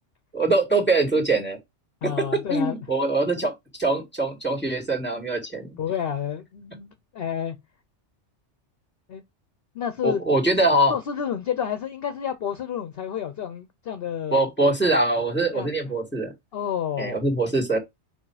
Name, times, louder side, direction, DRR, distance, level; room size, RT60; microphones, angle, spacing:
voice 1, 0.3-1.6 2.2-3.5 3.8-5.8 10.0-10.9 14.3-16.3 17.0-17.8, right 2 dB, 10° left, 2.2 m, -23 dB
voice 2, 2.0-2.9 5.8-7.6 9.1-9.2 9.7-10.2 10.9-14.5 15.5-15.9 16.5-17.2, left 8 dB, 60° left, 0.9 m, -30 dB
5.1 x 4.9 x 4.8 m
omnidirectional pair, 1.2 m